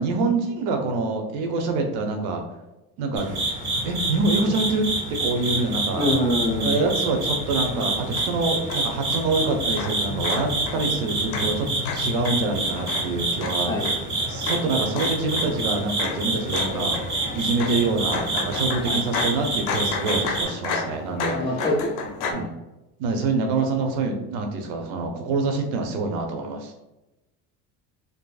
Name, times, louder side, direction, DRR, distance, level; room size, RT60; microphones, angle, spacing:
voice 1, 0.0-2.4 3.0-3.3 3.8-6.0 6.6-11.7 11.9-14.0 14.3-17.0 17.3-21.6 22.2-22.5 23.0-26.7, right 3 dB, 80° right, 4 dB, 0.6 m, -26 dB
sound 1, 3.2-20.5, right 2 dB, 35° right, 1.2 m, -27 dB
voice 2, 5.9-6.8 13.7-13.9 18.8-19.0 21.3-21.7 22.3-22.4, left 1 dB, 15° left, -3 dB, 0.5 m, -24 dB
sound 2, 7.5-22.3, left 4 dB, 85° left, 0.6 m, -33 dB
2.6 x 2.4 x 2.3 m, 0.99 s
cardioid pair, 150°, 36 cm